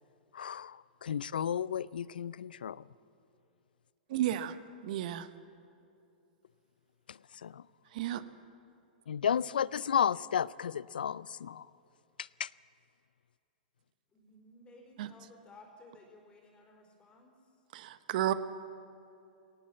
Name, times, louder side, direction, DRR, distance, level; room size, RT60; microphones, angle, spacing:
voice 1, 0.3-2.8 7.1-7.6 9.1-11.7 12.2-12.5, left 8 dB, 85° left, 22 dB, 0.4 m, -33 dB
voice 2, 4.1-4.5 4.8-5.3 7.9-8.2 15.0-15.1 17.7-18.3, right 13 dB, 60° right, 13 dB, 1.0 m, -32 dB
voice 3, 14.1-17.4, left 2 dB, 25° left, -1 dB, 4.1 m, -56 dB
19.0 x 18.0 x 7.6 m, 2.7 s
hypercardioid pair, 115°, 5 cm